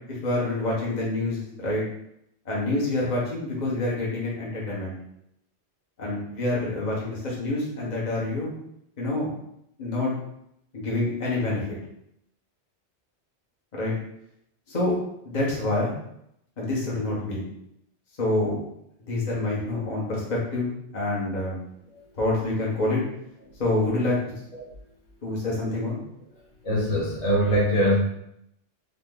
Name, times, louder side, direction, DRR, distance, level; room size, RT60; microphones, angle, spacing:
voice 1, 0.1-1.8 2.4-4.9 6.0-8.5 9.0-9.3 9.8-10.1 10.7-11.7 13.7-13.9 14.7-14.9 15.2-15.9 16.6-17.4 18.2-18.6 19.1-21.6 22.2-23.0 23.6-24.2 25.2-26.0, left 2 dB, 40° left, -5 dB, 1.3 m, -27 dB
voice 2, 26.6-27.9, equal, 80° left, -4 dB, 1.6 m, -22 dB
4.0 x 2.7 x 3.8 m, 0.76 s
omnidirectional pair, 1.1 m